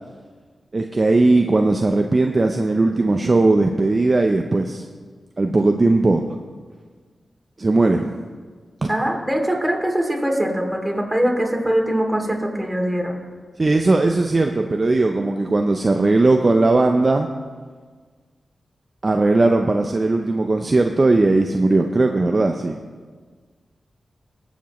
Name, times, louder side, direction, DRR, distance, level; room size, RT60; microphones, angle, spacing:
voice 1, 0.7-4.8 5.4-6.2 7.6-8.2 8.8-8.9 13.6-17.3 19.0-22.8, right 2 dB, 45° right, 4 dB, 0.6 m, -18 dB
voice 2, 8.9-13.2, right 1 dB, 15° right, 0 dB, 2.8 m, -22 dB
19.5 x 7.2 x 3.1 m, 1.5 s
cardioid pair, 45°, 0 cm